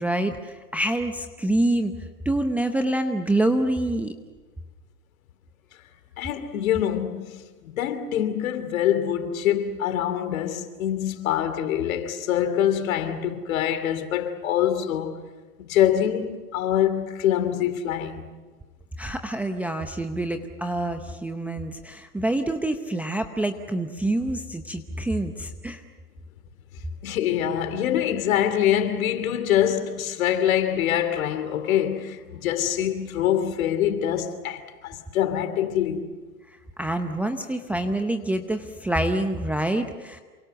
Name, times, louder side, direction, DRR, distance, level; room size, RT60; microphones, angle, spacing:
voice 1, 0.0-4.1 19.0-25.8 36.5-40.2, right 1 dB, 5° right, 0.7 m, -26 dB
voice 2, 6.2-15.2 15.6-18.3 27.0-36.1, left 10 dB, 60° left, 2.9 m, -25 dB
28.0 x 25.0 x 6.9 m
hypercardioid pair, 130°, 47 cm